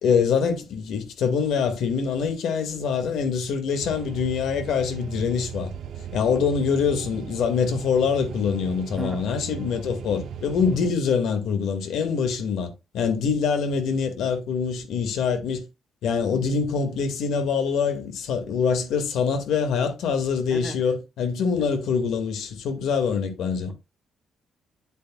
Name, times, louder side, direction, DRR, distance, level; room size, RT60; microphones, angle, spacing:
voice 1, 0.0-5.7 6.1-15.6 16.0-23.7, left 6 dB, 85° left, 1.8 m, -24 dB
sound 1, 3.8-10.9, right 8 dB, 65° right, 1.0 m, -38 dB
voice 2, 9.0-9.2 20.5-20.8 21.6-21.7 23.6-23.7, right 1 dB, ahead, 1.7 m, -35 dB
8.8 x 8.2 x 2.3 m
cardioid pair, 145°, 0 cm